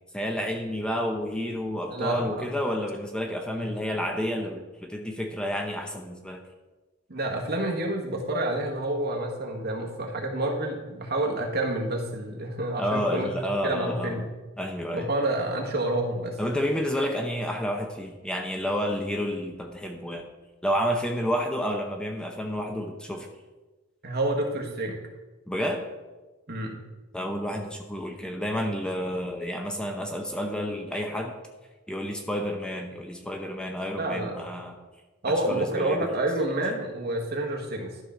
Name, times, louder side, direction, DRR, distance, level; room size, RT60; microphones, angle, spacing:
voice 1, 0.1-6.4 12.8-14.2 14.6-15.1 16.4-20.3 20.6-23.3 25.5-25.8 27.1-31.3 31.9-34.8 35.3-36.1, equal, 5° left, 3 dB, 0.7 m, -30 dB
voice 2, 1.8-2.6 3.5-3.7 7.1-14.3 14.9-16.4 24.0-25.0 26.5-26.8 34.0-34.4 35.2-37.9, right 1 dB, 55° right, 1 dB, 1.5 m, -29 dB
12.5 x 5.8 x 3.7 m, 1.2 s
head